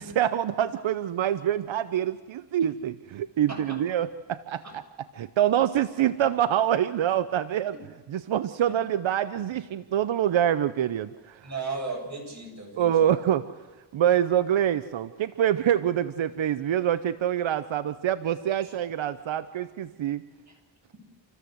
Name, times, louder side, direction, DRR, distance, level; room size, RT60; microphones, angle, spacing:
voice 1, 0.0-4.6 5.2-7.8 8.1-11.5 12.8-13.5 13.9-20.2, right 10 dB, 90° right, 13 dB, 0.9 m, -25 dB
voice 2, 11.4-13.1 18.6-18.7 20.5-20.6 20.9-21.0, right 3 dB, 35° right, 0 dB, 7.9 m, -36 dB
28.0 x 15.0 x 7.9 m, 1.3 s
cardioid pair, 70°, 45 cm